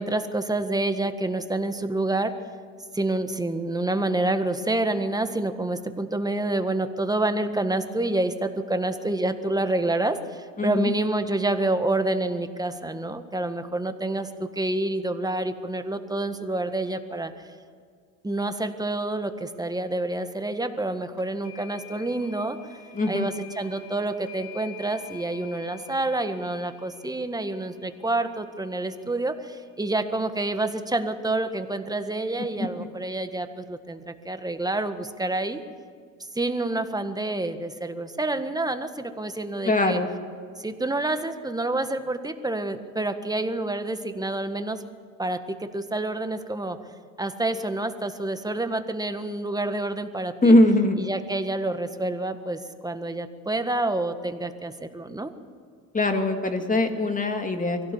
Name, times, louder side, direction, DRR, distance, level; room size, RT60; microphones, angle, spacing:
voice 1, 0.0-2.4 2.9-17.3 18.2-22.6 23.1-35.6 36.3-40.0 40.6-44.8 45.2-46.8 47.2-50.6 51.0-55.3, right 2 dB, 10° right, 9 dB, 1.6 m, -28 dB
voice 2, 10.6-10.9 22.9-23.3 32.6-32.7 39.6-40.1 50.4-51.0 55.9-57.8, left 1 dB, 20° left, 6 dB, 2.5 m, -21 dB
sound 1, 21.2-30.0, left 9 dB, 45° left, 5.4 m, -48 dB
23.5 x 17.0 x 7.2 m, 2.1 s
supercardioid pair, 85°, 40 cm